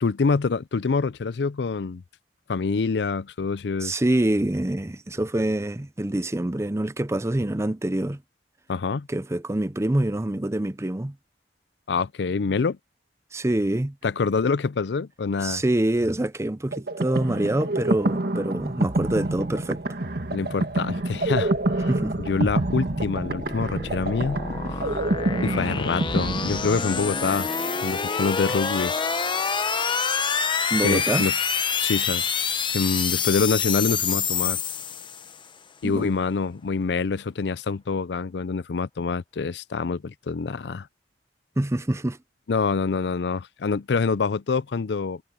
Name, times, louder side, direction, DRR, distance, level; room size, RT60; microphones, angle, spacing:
voice 1, 0.0-2.0 2.5-4.0 8.7-9.1 11.9-12.8 14.0-15.6 20.3-21.9 22.2-24.4 25.4-27.5 27.8-28.9 30.8-31.4 31.8-32.4 32.7-34.6 35.8-40.9 42.5-45.2, left 4 dB, 75° left, 0.5 m, -26 dB
voice 2, 3.8-8.2 9.1-11.2 13.3-13.9 15.4-19.8 21.9-22.2 30.7-31.3 35.8-36.1 41.6-42.2, right 1 dB, 15° right, 0.6 m, -25 dB
sound 1, 16.7-27.2, right 2 dB, 60° right, 1.8 m, -27 dB
sound 2, 21.0-35.4, left 6 dB, 30° left, 0.9 m, -27 dB
head